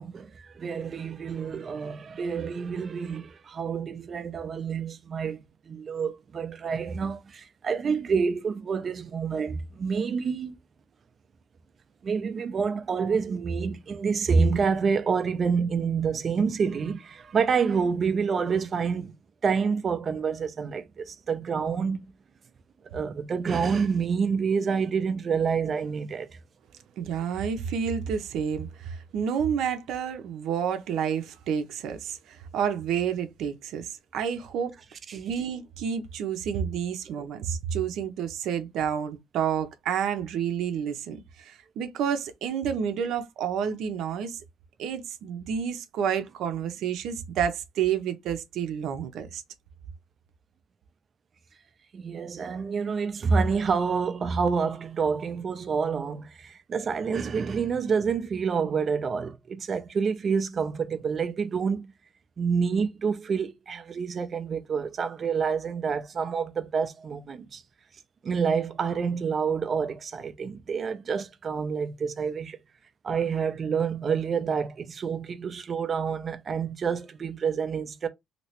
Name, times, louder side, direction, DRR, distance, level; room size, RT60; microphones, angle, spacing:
voice 1, 0.0-5.4 5.7-10.6 12.0-19.1 19.4-22.1 22.8-26.3 35.1-35.2 51.9-61.9 62.4-67.6 68.2-72.6 73.0-78.1, right 5 dB, 35° right, 0.5 m, -28 dB
voice 2, 27.0-34.8 35.1-44.4 44.8-49.4, right 8 dB, 75° right, 0.7 m, -30 dB
3.2 x 2.9 x 2.9 m
cardioid pair, 155°, 0 cm